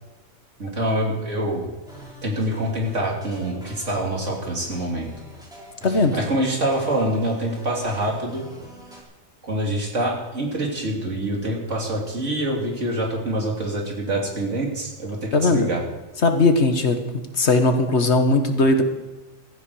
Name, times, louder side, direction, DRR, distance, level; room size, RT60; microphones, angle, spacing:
voice 1, 0.6-1.7 2.2-5.1 5.9-8.4 9.4-15.8, right 1 dB, 70° right, -1 dB, 3.2 m, -25 dB
sound 1, 1.9-9.0, equal, 5° right, 3.7 m, -44 dB
voice 2, 5.8-6.2 15.3-15.7 16.2-17.0 17.4-18.8, left 2 dB, 60° left, 6 dB, 1.7 m, -18 dB
16.5 x 14.5 x 4.8 m, 1.1 s
omnidirectional pair, 1.3 m